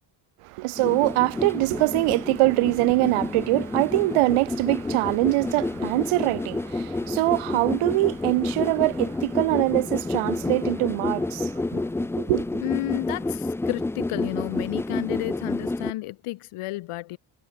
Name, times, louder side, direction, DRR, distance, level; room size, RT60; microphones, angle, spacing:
voice 1, 0.4-11.8 12.2-12.6, right 22 dB, 90° right, 1.5 m, -23 dB
sound 1, 0.8-15.9, left 2 dB, 5° left, 0.3 m, -29 dB
voice 2, 12.6-17.2, left 17 dB, 85° left, 4.1 m, -32 dB
cardioid pair, 85°, 50 cm